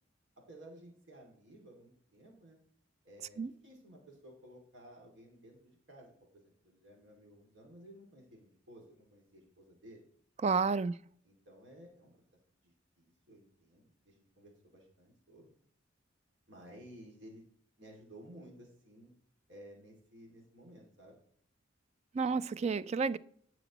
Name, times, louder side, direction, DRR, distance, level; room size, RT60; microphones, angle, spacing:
voice 1, 0.4-2.6 3.0-10.0 11.2-12.2 12.6-12.7 13.0-15.5 16.5-17.4 17.8-19.1 19.5-21.2, right 1 dB, 70° right, 2.4 m, -55 dB
voice 2, 10.4-10.9 22.1-23.2, right 4 dB, 35° right, 0.3 m, -30 dB
18.0 x 6.0 x 3.0 m
head